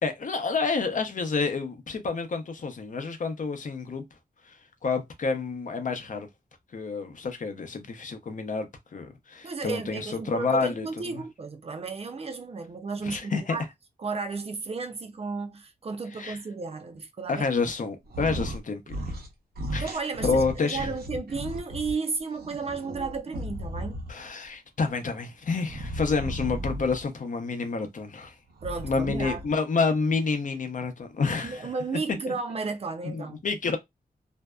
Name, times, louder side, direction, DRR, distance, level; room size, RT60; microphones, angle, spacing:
voice 1, 0.0-4.0 4.5-6.3 6.7-10.9 11.1-11.2 13.0-13.6 16.2-16.4 17.3-19.1 19.7-20.0 20.2-20.9 24.1-28.3 28.8-31.7 33.0-33.8, left 4 dB, 55° left, 0.6 m, -29 dB
voice 2, 9.4-13.6 14.0-17.4 19.8-24.0 28.6-29.4 31.4-33.4, right 4 dB, 40° right, 0.4 m, -33 dB
sound 1, 18.1-18.6 18.9-19.3 19.6-21.9 22.4-24.3 25.6-27.1 28.5-29.5, equal, 75° right, 0.8 m, -35 dB
2.6 x 2.2 x 2.2 m
wide cardioid pair, 135°, 16 cm